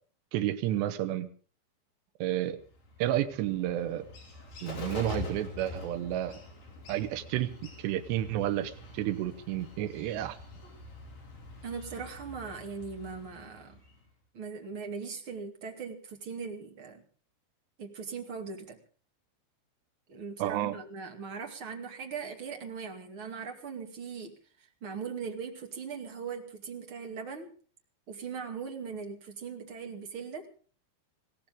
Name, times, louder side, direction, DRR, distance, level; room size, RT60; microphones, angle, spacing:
voice 1, 0.3-1.3 2.2-2.6 3.0-4.0 4.6-6.4 6.9-10.4 20.4-20.8, right 13 dB, 80° right, 9 dB, 3.3 m, -31 dB
Bird, 2.6-14.1, left 2 dB, 55° left, 6.7 m, -45 dB
voice 2, 11.6-13.8 14.3-17.0 17.8-18.8 20.1-27.5 28.1-30.5, right 5 dB, 35° right, 4 dB, 2.4 m, -40 dB
21.0 x 17.0 x 3.8 m, 0.41 s
omnidirectional pair, 5.1 m